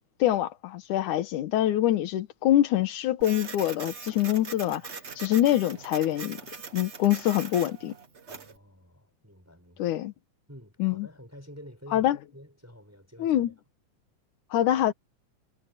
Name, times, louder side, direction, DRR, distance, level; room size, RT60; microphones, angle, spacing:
voice 1, 0.2-6.4 6.7-7.9 9.8-10.1 10.8-11.1 11.9-12.2 13.2-13.5 14.5-14.9, left 13 dB, 85° left, 2.7 m, -25 dB
Printer, 3.2-8.6, right 5 dB, 60° right, 0.7 m, -41 dB
voice 2, 8.3-10.0 10.5-13.5, equal, 5° right, 5.9 m, -49 dB
omnidirectional pair, 3.5 m